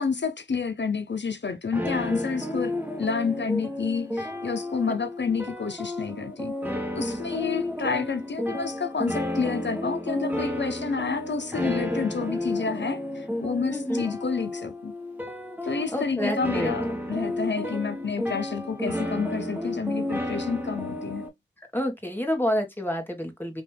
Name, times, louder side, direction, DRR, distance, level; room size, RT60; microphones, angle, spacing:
voice 1, 0.0-6.6 6.9-14.9 15.7-21.3, left 5 dB, 70° left, 0.7 m, -29 dB
sound 1, 1.7-21.3, left 1 dB, 10° right, 1.5 m, -32 dB
voice 2, 13.7-14.0 15.9-16.7 21.7-23.6, equal, 10° left, 1.6 m, -28 dB
5.2 x 3.0 x 3.4 m
wide cardioid pair, 55°, 19 cm